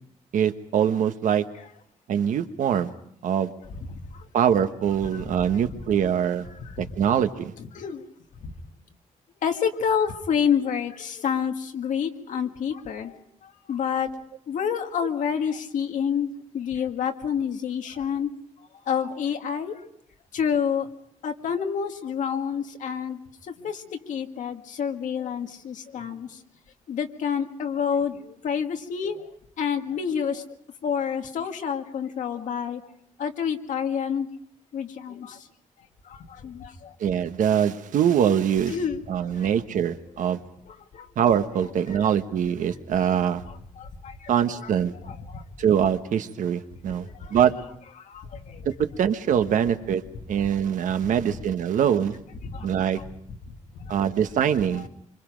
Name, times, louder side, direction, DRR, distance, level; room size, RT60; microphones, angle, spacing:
voice 1, 0.3-1.4 2.1-2.9 3.2-3.5 4.3-6.4 6.8-7.5 37.0-38.8 39.1-40.4 41.2-43.4 44.3-44.9 45.6-47.5 48.6-50.0 50.3-52.2 52.6-53.0 53.9-54.9, right 9 dB, 80° right, 9 dB, 1.3 m, -23 dB
voice 2, 3.9-4.3 5.1-5.2 5.7-5.8 6.5-6.9 7.6-8.0 8.4-8.5 9.4-14.1 14.5-18.3 18.9-19.8 20.3-20.9 21.2-26.4 26.9-29.3 29.6-30.5 30.8-32.8 33.2-34.3 34.7-35.5 36.0-37.0 38.7-39.0 39.3-39.5 40.7-41.1 41.9-42.1 43.8-44.3 45.0-45.4 46.9-47.4 48.0-48.7 52.4-52.7 53.0-53.1 53.8-54.0, left 7 dB, 75° left, 5 dB, 1.9 m, -29 dB
26.0 x 25.0 x 5.2 m, 0.68 s
wide cardioid pair, 180°, 13 cm